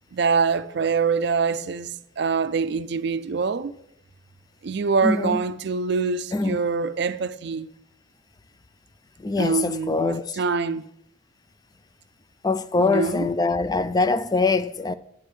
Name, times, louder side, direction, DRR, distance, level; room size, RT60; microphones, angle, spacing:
voice 1, 0.1-3.7 4.6-7.7 9.4-10.9 12.8-13.3, right 5 dB, 55° right, 0.4 m, -25 dB
voice 2, 5.0-5.4 6.3-6.6 9.2-10.4 12.4-14.9, left 3 dB, 20° left, 0.3 m, -23 dB
10.5 x 9.2 x 3.2 m
head